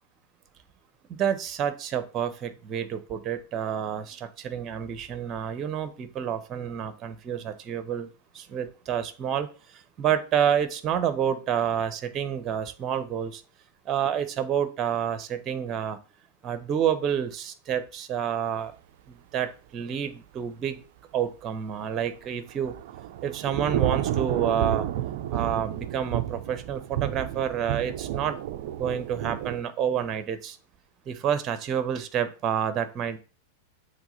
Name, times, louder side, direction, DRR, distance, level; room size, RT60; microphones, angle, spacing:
voice 1, 1.1-8.1 8.3-13.4 13.9-16.0 16.4-18.7 19.1-20.8 21.1-22.7 23.2-24.9 25.3-28.4 28.8-30.6 31.1-33.2, right 8 dB, 30° right, 11 dB, 0.8 m, -29 dB
Thunder / Rain, 22.2-29.6, right 12 dB, 50° right, 0.3 m, -31 dB
7.2 x 3.3 x 4.0 m, 0.36 s
figure-of-eight pair, 90°, 0 cm